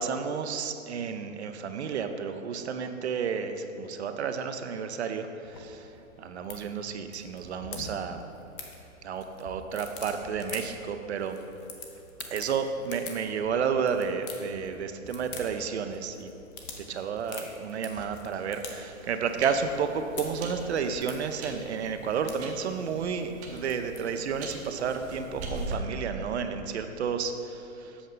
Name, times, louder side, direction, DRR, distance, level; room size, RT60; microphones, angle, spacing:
voice 1, 0.0-5.9 6.2-8.2 9.0-11.4 12.3-16.3 16.8-28.0, right 6 dB, 55° right, 7 dB, 0.5 m, -31 dB
sound 1, 5.4-24.9, left 4 dB, 20° left, 0.6 m, -46 dB
sound 2, 18.4-25.7, right 2 dB, 20° right, 0.7 m, -42 dB
7.9 x 6.2 x 3.8 m, 2.9 s
hypercardioid pair, 130°, 42 cm